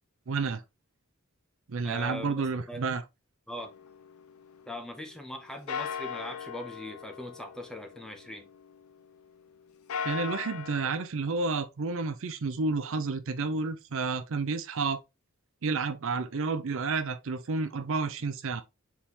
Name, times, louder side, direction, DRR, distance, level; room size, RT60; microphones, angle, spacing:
voice 1, 0.3-0.6 1.7-3.0 10.0-15.0 15.6-18.6, right 4 dB, 65° right, 0.5 m, -30 dB
voice 2, 1.8-2.9 3.5-3.8 4.7-8.5, left 1 dB, 5° left, 0.6 m, -41 dB
sound 1, 3.5-5.3 5.7-9.2 9.7-10.9, left 7 dB, 80° left, 0.5 m, -39 dB
4.2 x 3.6 x 2.9 m
head